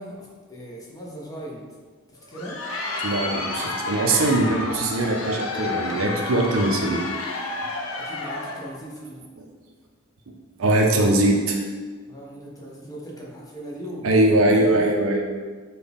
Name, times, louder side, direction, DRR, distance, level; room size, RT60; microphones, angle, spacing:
voice 1, 0.0-1.6 2.1-2.6 8.0-9.2 12.1-14.8, right 1 dB, 15° left, -3 dB, 0.6 m, -38 dB
Crowd, 2.2-8.7, left 3 dB, 85° left, 0.5 m, -30 dB
voice 2, 3.0-7.0 10.6-11.6 14.0-15.2, right 2 dB, 85° right, 1 dB, 0.5 m, -21 dB
4.0 x 2.3 x 3.4 m, 1.5 s
head